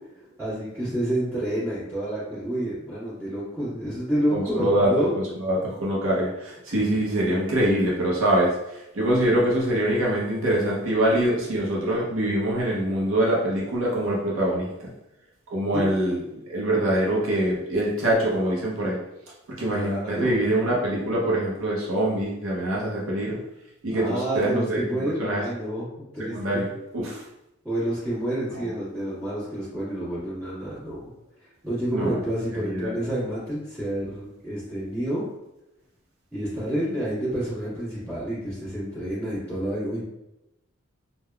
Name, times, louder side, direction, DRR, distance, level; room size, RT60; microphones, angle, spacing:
voice 1, 0.4-5.1 15.7-15.9 19.7-20.4 23.9-26.6 27.6-31.1 31.6-35.2 36.3-40.0, right 1 dB, 10° right, -14 dB, 1.3 m, -29 dB
voice 2, 4.3-14.7 15.5-19.0 19.5-23.4 23.8-25.4 26.3-27.2 31.9-32.2 32.6-33.0, right 1 dB, 80° right, -4 dB, 0.7 m, -24 dB
3.4 x 2.1 x 2.3 m, 0.90 s
head